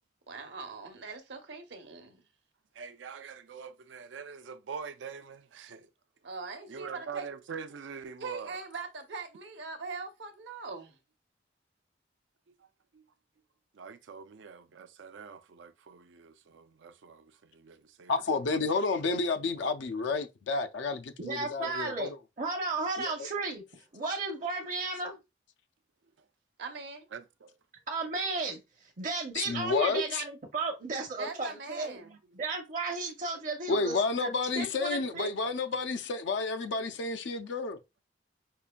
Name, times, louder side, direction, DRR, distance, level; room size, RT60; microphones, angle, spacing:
voice 1, 0.3-2.2 6.2-7.2 8.2-10.9 26.6-27.0 31.2-32.1, right 4 dB, 70° right, 0.8 m, -41 dB
voice 2, 2.7-5.9 6.7-8.6 12.9-13.1 13.7-18.7 27.1-27.5 32.0-32.2, right 6 dB, 90° right, 0.5 m, -44 dB
voice 3, 18.1-22.2 23.0-23.3 29.3-30.2 33.7-37.8, left 4 dB, 80° left, 0.5 m, -30 dB
voice 4, 21.2-22.1 22.4-25.2 27.9-28.6 29.0-32.0 32.3-35.3, right 3 dB, 45° right, 0.6 m, -34 dB
5.4 x 2.5 x 2.2 m
head